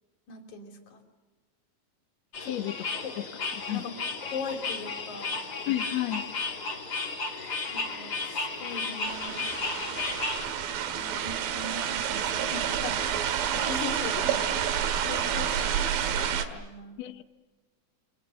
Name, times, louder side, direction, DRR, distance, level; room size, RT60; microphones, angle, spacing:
voice 1, 0.3-1.0 2.4-2.5 3.0-3.2 3.7-3.9 4.2-5.3 7.7-9.7 11.0-13.0 13.5-14.5 15.0-16.9, left 4 dB, 55° left, 5 dB, 4.1 m, -40 dB
sound 1, 2.3-10.5, left 3 dB, 30° left, 2.2 m, -34 dB
voice 2, 2.4-2.9 3.2-3.3 3.7-3.8 5.7-6.2 17.0-17.2, left 14 dB, 70° left, 9 dB, 1.6 m, -31 dB
sound 2, 9.1-16.5, right 8 dB, 70° right, 3.2 m, -29 dB
27.5 x 25.5 x 8.2 m, 1.2 s
omnidirectional pair, 4.4 m